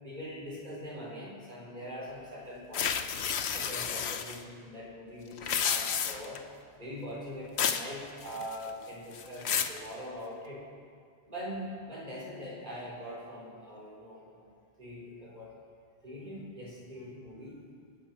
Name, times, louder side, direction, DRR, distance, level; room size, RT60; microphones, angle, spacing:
voice 1, 0.0-3.1 3.5-6.4 6.8-10.6 11.3-14.5 14.8-15.5 16.0-17.6, equal, 45° right, -5 dB, 4.4 m, -42 dB
sound 1, 2.7-4.4 5.3-6.4 7.6-7.9 8.2-8.7 9.1-9.8, left 7 dB, 90° left, 1.1 m, -31 dB
26.0 x 10.0 x 4.5 m, 2.1 s
omnidirectional pair, 1.1 m